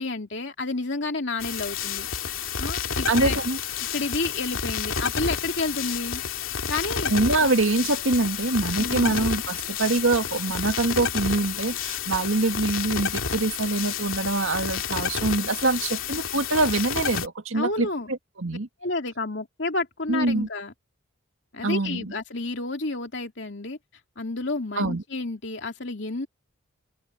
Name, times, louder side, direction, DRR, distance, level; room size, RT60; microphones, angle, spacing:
voice 1, 0.0-2.1 2.6-3.4 3.9-6.2 6.7-7.1 8.8-9.2 17.5-18.1 18.8-20.7 21.5-23.8 24.2-26.3, left 3 dB, 60° left, 2.9 m, -30 dB
sound 1, 1.4-17.3, left 6 dB, 85° left, 2.6 m, -30 dB
voice 2, 3.1-3.6 7.1-18.7 20.1-20.5 21.6-22.1 24.8-25.0, right 2 dB, 80° right, 2.0 m, -24 dB
open air
head